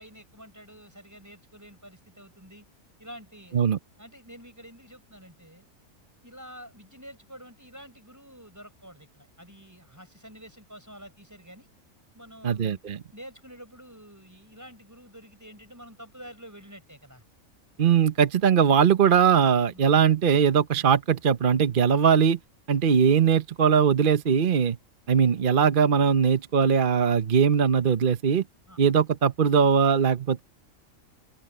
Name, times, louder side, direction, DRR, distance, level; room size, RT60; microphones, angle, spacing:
voice 1, 0.0-2.6 3.0-3.6 4.0-5.7 6.0-11.7 12.1-12.8 13.1-17.2 19.7-19.9 28.7-28.8, equal, 10° right, 6.8 m, -48 dB
voice 2, 12.4-13.0 17.8-22.4 22.7-24.8 25.1-28.4 28.8-30.4, right 7 dB, 45° right, 0.9 m, -21 dB
open air
omnidirectional pair, 1.4 m